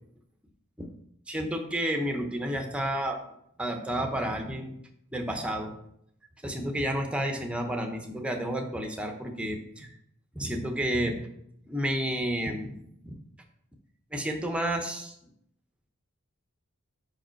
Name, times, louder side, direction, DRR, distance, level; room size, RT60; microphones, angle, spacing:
voice 1, 1.3-3.2 3.6-4.7 5.1-5.7 6.4-9.9 10.3-11.2 11.7-13.2 14.1-15.2, right 1 dB, 5° right, 4 dB, 0.7 m, -31 dB
5.3 x 4.9 x 4.4 m, 0.74 s
head